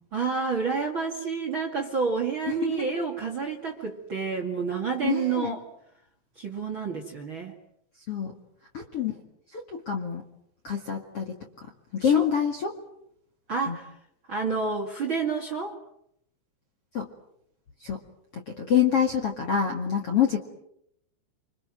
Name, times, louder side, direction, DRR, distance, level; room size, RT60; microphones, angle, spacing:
voice 1, 0.1-5.6 6.4-7.5 12.0-12.3 13.5-13.9 14.3-15.8, right 5 dB, 45° right, 5 dB, 1.6 m, -29 dB
voice 2, 2.5-3.0 5.0-5.6 8.1-8.3 8.7-9.2 9.5-10.2 10.6-11.3 11.6-12.8 13.7-13.8 16.9-17.1 17.8-18.0 18.3-20.4, left 8 dB, 55° left, 2 dB, 1.7 m, -27 dB
27.5 x 26.5 x 7.7 m, 0.75 s
omnidirectional pair, 5.9 m